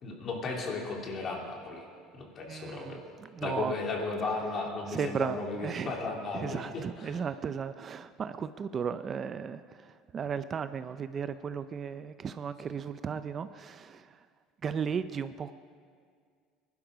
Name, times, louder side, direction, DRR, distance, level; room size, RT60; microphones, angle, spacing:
voice 1, 0.0-1.8 2.2-3.0 3.4-6.6, left 3 dB, 40° left, 0 dB, 3.0 m, -35 dB
voice 2, 2.5-3.7 4.9-6.1 6.3-14.3 14.6-15.5, right 7 dB, 35° right, 12 dB, 0.4 m, -35 dB
20.0 x 12.0 x 5.1 m, 2.1 s
cardioid pair, 125°, 0 cm